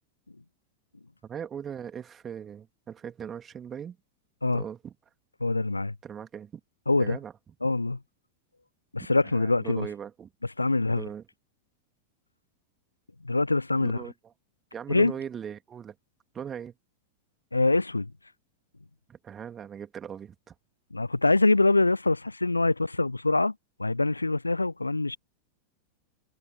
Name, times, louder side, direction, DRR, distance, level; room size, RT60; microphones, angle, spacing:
voice 1, 1.2-4.0 4.5-4.9 6.0-6.6 7.0-7.3 9.2-10.3 10.9-11.2 13.8-14.3 14.7-15.9 16.3-16.7 19.1-20.5, right 8 dB, 25° right, 2.9 m, -39 dB
voice 2, 5.4-6.0 6.9-7.2 7.6-8.0 8.9-9.9 10.6-11.0 13.2-14.0 14.9-15.1 17.5-18.1 20.9-23.5 23.8-25.2, left 2 dB, 80° left, 0.3 m, -24 dB
figure-of-eight pair, 90°, 0 cm